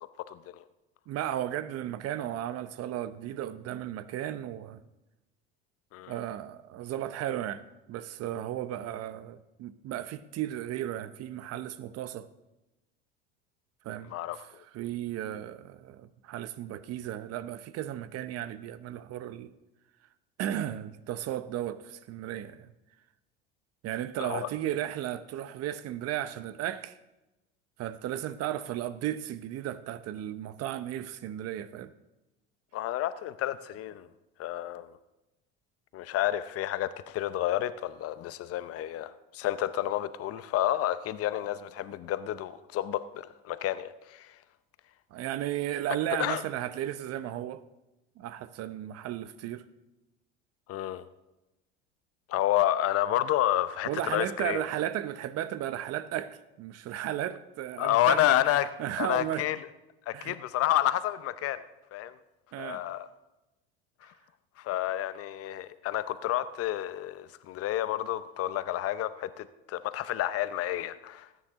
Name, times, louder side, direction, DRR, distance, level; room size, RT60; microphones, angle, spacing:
voice 1, 0.3-0.6 5.9-6.1 14.1-14.4 24.2-24.5 32.7-34.1 34.4-35.0 35.9-44.3 46.1-46.4 50.7-51.0 52.3-54.6 57.8-58.7 59.0-59.6 60.1-61.6 61.9-62.2 62.6-63.1 64.0-64.1 64.6-71.3, left 13 dB, 50° left, 0.8 m, -30 dB
voice 2, 1.1-4.8 6.1-12.3 13.8-14.1 14.7-19.5 20.4-22.7 23.8-27.0 27.8-31.9 45.1-47.7 48.2-49.7 53.9-59.5 60.1-60.4 62.5-62.8, right 12 dB, 50° right, 0.8 m, -35 dB
18.5 x 9.4 x 3.7 m
hypercardioid pair, 85°, 31 cm